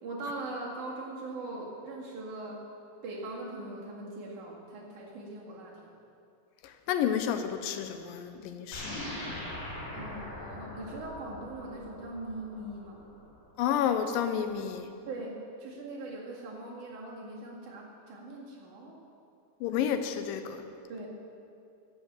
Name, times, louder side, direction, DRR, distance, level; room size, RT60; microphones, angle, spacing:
voice 1, 0.0-2.6 3.0-5.9 9.9-13.1 15.1-18.9 20.9-21.1, right 2 dB, 65° right, -4 dB, 3.5 m, -41 dB
voice 2, 6.6-8.9 13.6-14.9 19.6-20.7, left 9 dB, 90° left, 8 dB, 2.4 m, -30 dB
sound 1, 8.7-13.4, left 1 dB, 60° left, 5.1 m, -41 dB
11.5 x 8.3 x 7.3 m, 2.5 s
omnidirectional pair, 3.8 m